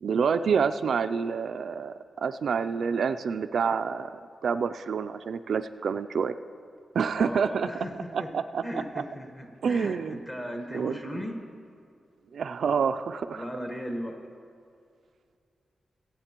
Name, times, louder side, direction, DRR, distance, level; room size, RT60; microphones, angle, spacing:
voice 1, 0.0-6.4 6.9-7.7 8.1-9.0 9.6-10.2 10.7-11.0 12.3-13.4, right 6 dB, 70° right, 10 dB, 0.3 m, -28 dB
voice 2, 7.1-8.3 8.6-11.4 13.3-14.2, equal, 20° left, 2 dB, 1.3 m, -37 dB
22.0 x 8.5 x 3.0 m, 2.4 s
wide cardioid pair, 125°, 0 cm